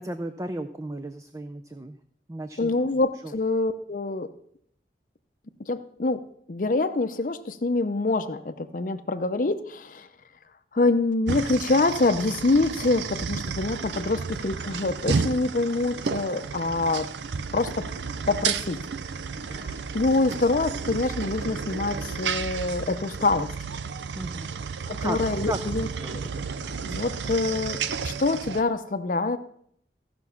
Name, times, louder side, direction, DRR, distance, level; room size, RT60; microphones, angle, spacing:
voice 1, 0.0-2.0 2.3-2.8 3.2-3.3 24.2-24.6 25.0-25.2 25.4-25.6 26.0-26.2, right 1 dB, 15° right, 8 dB, 0.4 m, -34 dB
voice 2, 2.6-4.3 5.7-10.1 10.7-17.1 17.5-17.9 18.3-18.8 19.5-23.5 24.9-26.3 26.8-29.4, left 2 dB, 50° left, 10 dB, 0.6 m, -26 dB
sound 1, 11.3-28.6, right 5 dB, 85° right, 0.5 m, -32 dB
15.0 x 6.0 x 5.7 m, 0.68 s
head